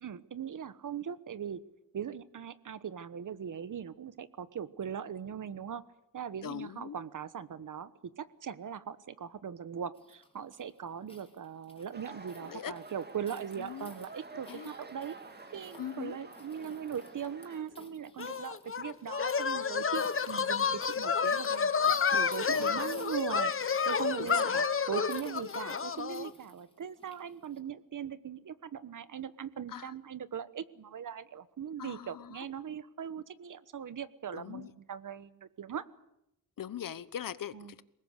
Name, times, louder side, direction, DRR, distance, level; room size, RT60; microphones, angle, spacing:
voice 1, 0.0-1.6 1.9-5.8 6.1-15.2 15.5-21.7 22.1-35.8 37.5-37.7, right 8 dB, 65° right, 15 dB, 1.2 m, -40 dB
voice 2, 6.4-7.0 12.4-12.7 13.6-13.9 14.5-14.7 15.8-16.2 22.5-22.9 24.2-24.7 29.7-29.9 31.8-32.5 34.3-34.7 36.6-37.8, left 9 dB, 75° left, 16 dB, 1.1 m, -41 dB
sound 1, 9.9-27.6, left 2 dB, 15° left, 4.4 m, -55 dB
sound 2, 11.9-17.6, right 3 dB, 30° right, 2.2 m, -50 dB
sound 3, 18.2-26.3, left 6 dB, 40° left, 1.1 m, -30 dB
23.0 x 20.5 x 8.1 m, 0.84 s
wide cardioid pair, 105°, 33 cm